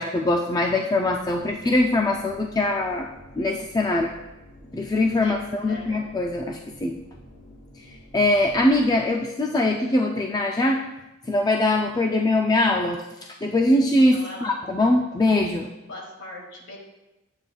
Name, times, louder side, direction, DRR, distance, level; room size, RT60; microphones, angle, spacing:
voice 1, 0.0-3.1 3.4-4.2 4.7-7.0 8.1-10.8 11.3-13.0 13.4-15.7, left 2 dB, 20° left, 2 dB, 0.3 m, -22 dB
sound 1, 1.1-9.4, equal, 80° left, 1.3 m, -49 dB
voice 2, 5.7-6.0 14.1-14.6 15.9-16.8, left 1 dB, 60° left, -1 dB, 1.9 m, -39 dB
8.7 x 7.9 x 2.3 m, 0.99 s
head